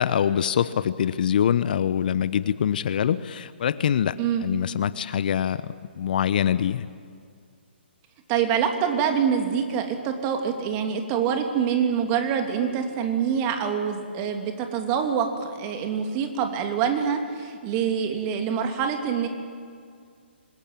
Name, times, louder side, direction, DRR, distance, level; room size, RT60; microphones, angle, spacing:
voice 1, 0.0-4.1 4.4-6.9, left 9 dB, 50° left, 15 dB, 0.8 m, -24 dB
voice 2, 8.3-19.3, right 7 dB, 30° right, 5 dB, 2.9 m, -25 dB
26.0 x 21.0 x 8.8 m, 2.2 s
figure-of-eight pair, 135°, 6 cm